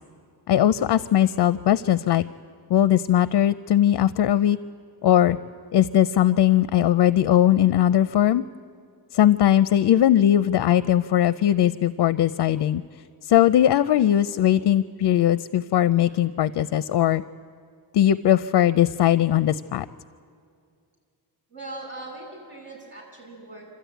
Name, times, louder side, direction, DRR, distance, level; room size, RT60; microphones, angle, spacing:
voice 1, 0.5-2.2 2.7-4.6 5.0-5.4 5.7-8.4 9.1-12.8 13.2-17.2 17.9-19.9, left 11 dB, 75° left, 14 dB, 0.6 m, -19 dB
voice 2, 21.5-23.8, right 2 dB, 30° right, -4 dB, 7.5 m, -40 dB
27.5 x 13.0 x 9.2 m, 2.3 s
wide cardioid pair, 155°, 40 cm